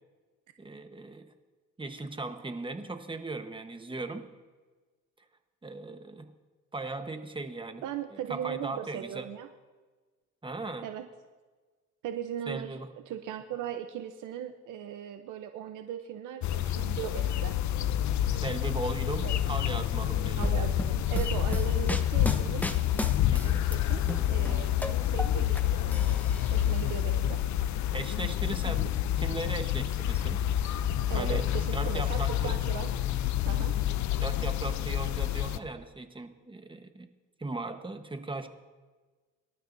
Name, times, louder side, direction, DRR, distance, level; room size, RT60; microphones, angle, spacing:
voice 1, 0.6-1.3 1.8-4.2 5.6-6.3 6.7-7.8 8.3-9.3 10.4-10.9 12.5-12.9 18.3-20.4 23.3-23.6 27.9-28.9 29.2-30.5 31.1-31.5 31.7-32.6 34.2-37.1 37.4-38.5, right 2 dB, 15° right, 7 dB, 1.2 m, -37 dB
voice 2, 7.8-9.5 10.8-11.0 12.0-17.6 19.2-19.3 20.4-22.6 23.2-26.2 26.5-27.4 31.1-32.9 33.4-33.7, right 10 dB, 80° right, 7 dB, 0.8 m, -38 dB
sound 1, 16.4-35.6, left 11 dB, 70° left, 0.6 m, -28 dB
sound 2, 20.4-23.8 24.1-25.6 25.9-26.8, left 1 dB, 5° left, 0.9 m, -33 dB
24.5 x 12.5 x 2.7 m, 1.4 s
cardioid pair, 90°, 30 cm